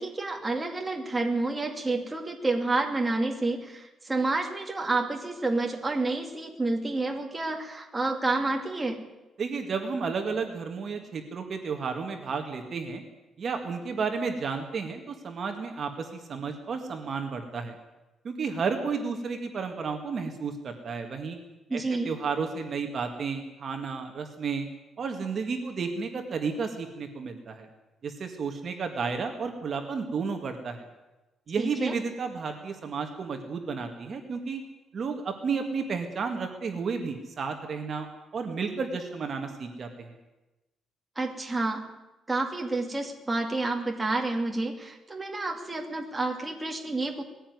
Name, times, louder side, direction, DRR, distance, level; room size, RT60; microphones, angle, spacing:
voice 1, 0.0-9.0 21.7-22.2 31.6-31.9 41.2-41.8 42.3-47.2, right 2 dB, 10° right, 2 dB, 2.5 m, -29 dB
voice 2, 9.4-13.0 13.4-17.8 18.2-21.4 21.7-24.7 25.0-27.7 28.0-30.9 31.5-34.6 34.9-38.1 38.3-40.1, right 5 dB, 35° right, 5 dB, 2.0 m, -32 dB
20.5 x 16.0 x 9.5 m, 1.0 s
cardioid pair, 180°, 0 cm